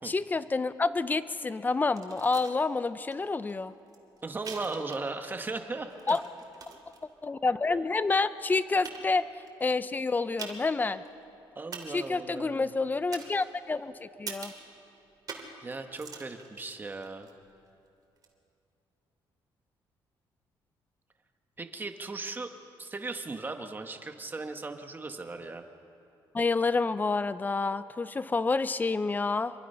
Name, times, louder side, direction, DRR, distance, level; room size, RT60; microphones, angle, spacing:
voice 1, 0.0-3.7 6.1-6.2 7.2-9.3 9.6-11.0 11.9-14.5 26.3-29.5, left 3 dB, 20° left, 14 dB, 0.7 m, -28 dB
sound 1, 1.9-2.6 3.1-3.2 3.5-5.4 5.7-7.0 7.7-7.8 8.4-8.5 8.8-9.5 10.4-10.8 11.0-11.1 11.7-12.2 13.1-13.8 14.3-14.7 15.3-15.6 15.9-17.3 18.2-18.3, right 5 dB, 45° right, 3.0 m, -44 dB
voice 2, 4.2-6.2 7.7-7.8 11.5-12.7 15.6-17.3 21.6-22.5 22.8-25.6, right 3 dB, 25° right, 6 dB, 1.5 m, -37 dB
26.5 x 23.0 x 5.7 m, 2.8 s
cardioid pair, 125°, 9 cm